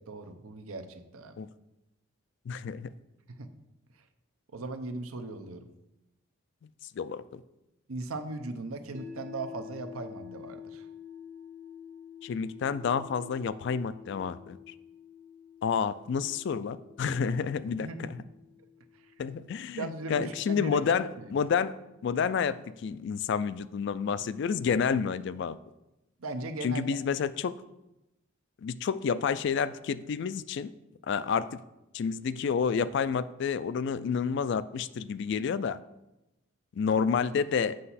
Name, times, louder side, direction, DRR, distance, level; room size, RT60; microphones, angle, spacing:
voice 1, 0.0-1.4 3.3-3.5 4.5-5.6 7.9-10.8 17.8-18.3 19.8-21.3 26.2-26.9, right 2 dB, 85° right, 7 dB, 0.7 m, -38 dB
voice 2, 2.5-2.9 7.0-7.4 12.2-14.6 15.6-18.2 19.2-21.7 22.0-25.6 26.6-27.6 28.6-30.7 31.1-31.6 31.9-35.8 36.8-37.8, left 6 dB, 55° left, 15 dB, 0.3 m, -29 dB
sound 1, 8.9-21.1, left 8 dB, 40° right, 0.8 m, -49 dB
7.6 x 5.8 x 4.1 m, 0.94 s
head